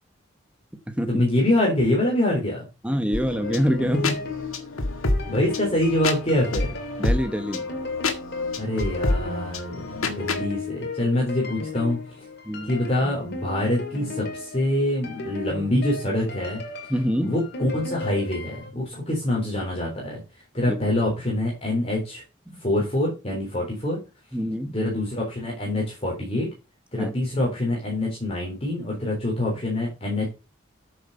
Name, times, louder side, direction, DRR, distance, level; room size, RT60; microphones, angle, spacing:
voice 1, 1.1-2.7 5.3-6.8 8.6-12.0 12.7-16.6 17.2-22.2 22.6-24.0 24.7-26.5 26.9-30.3, left 1 dB, 30° left, 3.7 m, -25 dB
voice 2, 2.8-4.2 7.0-7.7 12.5-12.7 16.9-17.3 20.7-20.8 22.5-22.6 24.3-24.7 26.9-27.1, equal, 5° right, 1.1 m, -25 dB
sound 1, 3.1-10.4, left 2 dB, 90° left, 1.9 m, -29 dB
sound 2, 3.4-18.7, left 3 dB, 50° left, 2.2 m, -35 dB
9.4 x 6.8 x 5.6 m
head